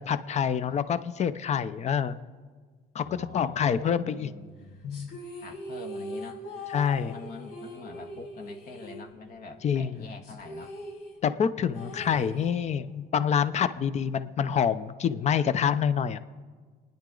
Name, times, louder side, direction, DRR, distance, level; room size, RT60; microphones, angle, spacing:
voice 1, 0.0-2.2 2.9-3.0 3.3-4.3 4.8-5.2 6.7-7.1 9.6-10.0 11.2-16.2, left 7 dB, 40° left, 14 dB, 0.7 m, -27 dB
voice 2, 3.0-4.8 5.4-6.4 7.0-10.7 11.8-12.9 13.7-13.8, left 3 dB, 60° left, 5 dB, 1.7 m, -45 dB
sound 1, 4.9-9.6 9.8-9.9 10.2-12.9, left 1 dB, 80° left, 5.6 m, -41 dB
27.5 x 10.0 x 3.9 m, 1.5 s
cardioid pair, 110°, 17 cm